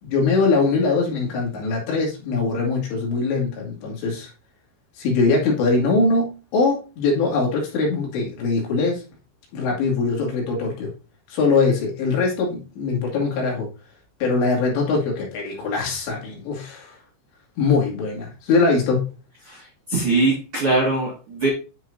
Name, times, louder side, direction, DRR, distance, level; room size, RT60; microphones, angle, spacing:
voice 1, 0.0-4.3 5.0-9.0 9.5-10.9 11.3-13.7 14.2-17.0 17.6-19.1, left 3 dB, 65° left, 4.5 m, -22 dB
voice 2, 19.4-21.5, right 3 dB, 85° right, 1.2 m, -22 dB
10.0 x 6.1 x 2.7 m
omnidirectional pair, 5.8 m